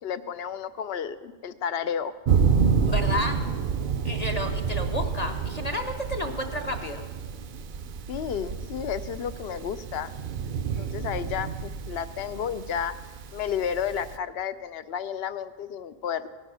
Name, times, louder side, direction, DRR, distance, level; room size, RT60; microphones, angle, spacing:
voice 1, 0.0-2.1 8.1-10.1 10.8-13.0 13.3-16.3, left 8 dB, 80° left, 12 dB, 0.8 m, -32 dB
Thunder, 2.3-14.2, right 6 dB, 60° right, 0.6 m, -29 dB
voice 2, 2.9-3.4 4.0-7.0, left 1 dB, 45° left, 2 dB, 0.7 m, -31 dB
16.5 x 6.6 x 6.1 m, 1.4 s
omnidirectional pair, 1.0 m